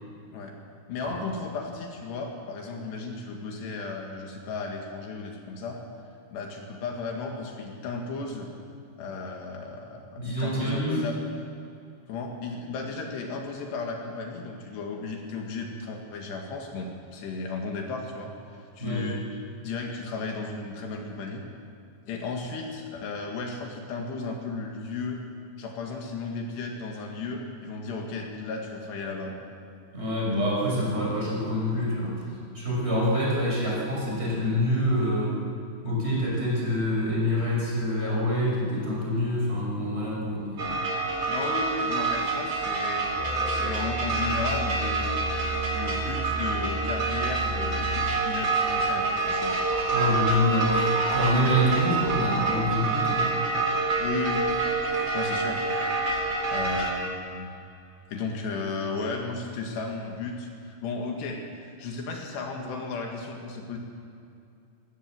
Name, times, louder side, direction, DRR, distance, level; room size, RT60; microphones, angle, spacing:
voice 1, 0.9-5.8 6.3-8.5 9.0-11.2 12.1-21.4 22.1-25.2 25.6-29.5 32.3-32.4 41.3-43.1 43.5-45.1 45.7-49.6 54.0-54.5 55.1-55.6 56.1-57.5 58.1-63.8, left 3 dB, 75° left, 2 dB, 3.9 m, -34 dB
voice 2, 10.2-11.0 18.8-19.1 29.9-32.2 32.5-35.3 35.8-40.8 49.9-53.3, left 1 dB, 15° right, -5 dB, 6.1 m, -26 dB
sound 1, 40.6-56.9, right 3 dB, 30° right, 2.9 m, -27 dB
Musical instrument, 43.1-48.3, right 1 dB, 60° left, 5.7 m, -34 dB
21.5 x 17.0 x 7.6 m, 2.5 s
omnidirectional pair, 5.0 m